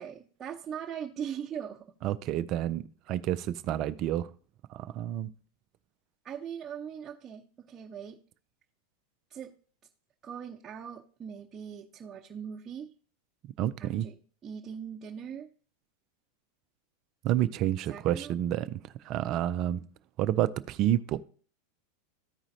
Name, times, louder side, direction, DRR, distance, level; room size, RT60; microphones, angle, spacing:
voice 1, 0.0-1.9 6.2-8.2 9.3-9.5 10.2-12.9 13.8-14.1 14.4-15.5 17.9-18.3, right 8 dB, 25° right, 0.9 m, -40 dB
voice 2, 2.0-4.3 4.7-5.3 13.6-14.1 17.2-18.7 19.0-19.8 20.2-21.2, right 12 dB, 45° right, 0.4 m, -29 dB
14.0 x 4.9 x 2.7 m
figure-of-eight pair, 90°, 0 cm